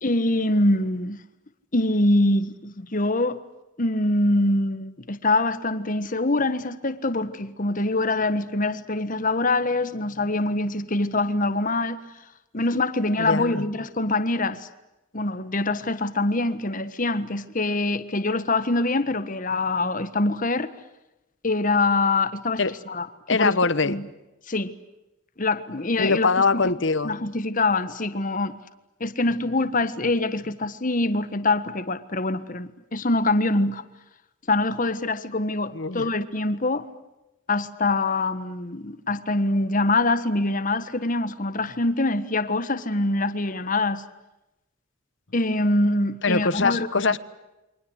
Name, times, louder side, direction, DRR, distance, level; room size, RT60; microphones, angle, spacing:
voice 1, 0.0-1.2 1.7-3.4 3.8-12.0 12.5-14.7 15.1-20.7 21.4-23.6 23.8-24.0 24.5-24.7 25.4-26.6 27.0-28.6 29.0-33.8 34.5-36.9 37.5-44.0 45.3-46.9, left 2 dB, 40° left, 1.4 m, -24 dB
voice 2, 13.2-13.7 22.6-22.7 23.3-24.0 26.0-27.1 35.7-36.1 46.2-47.2, left 4 dB, 65° left, 1.2 m, -23 dB
29.0 x 24.0 x 8.1 m
head